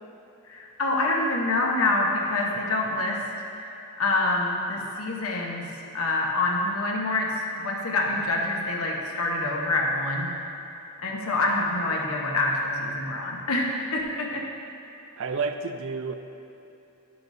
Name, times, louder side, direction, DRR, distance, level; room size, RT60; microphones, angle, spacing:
voice 1, 0.5-3.2 3.5-3.7 4.0-10.3 11.0-14.4, left 2 dB, 75° left, -1 dB, 1.0 m, -26 dB
voice 2, 15.2-16.1, right 4 dB, 60° right, 7 dB, 0.4 m, -30 dB
10.5 x 6.8 x 2.7 m, 3.0 s
head